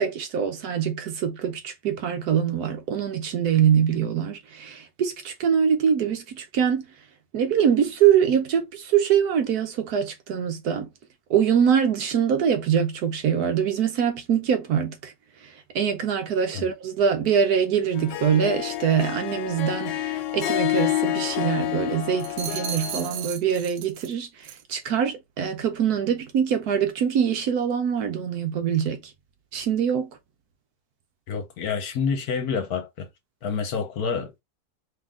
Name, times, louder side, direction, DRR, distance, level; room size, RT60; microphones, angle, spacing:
voice 1, 0.0-6.9 7.3-10.9 11.3-15.1 15.4-29.1 29.5-30.1, right 8 dB, 65° right, 1.1 m, -24 dB
Harp, 17.9-23.3, left 15 dB, 80° left, 1.2 m, -28 dB
sound 1, 22.2-24.1 24.4-24.7, right 7 dB, 85° right, 1.3 m, -35 dB
voice 2, 31.3-33.1 33.4-34.4, left 6 dB, 65° left, 1.3 m, -28 dB
3.8 x 3.1 x 3.6 m
omnidirectional pair, 1.9 m